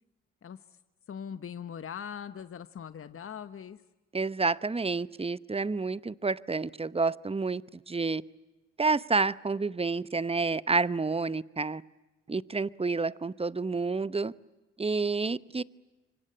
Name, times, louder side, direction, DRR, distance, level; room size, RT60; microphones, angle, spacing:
voice 1, 0.4-0.8 1.1-3.8, left 8 dB, 50° left, 12 dB, 1.1 m, -41 dB
voice 2, 4.1-7.6 7.9-8.2 8.8-11.8 12.3-14.3 14.8-15.6, right 4 dB, 20° right, 18 dB, 0.9 m, -29 dB
26.5 x 24.5 x 8.9 m, 1.1 s
supercardioid pair, 50°, 29 cm